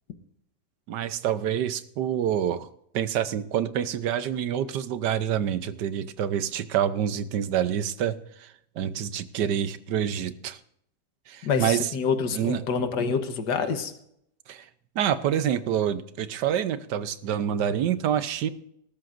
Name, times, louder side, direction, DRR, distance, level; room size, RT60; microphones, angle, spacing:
voice 1, 0.9-2.7 2.9-10.6 11.3-11.9 12.3-12.6 14.5-14.7 14.9-18.5, right 9 dB, 85° right, 13 dB, 1.4 m, -27 dB
voice 2, 11.4-13.9, left 5 dB, 85° left, 8 dB, 1.8 m, -27 dB
20.0 x 12.5 x 2.6 m, 0.72 s
omnidirectional pair, 1.8 m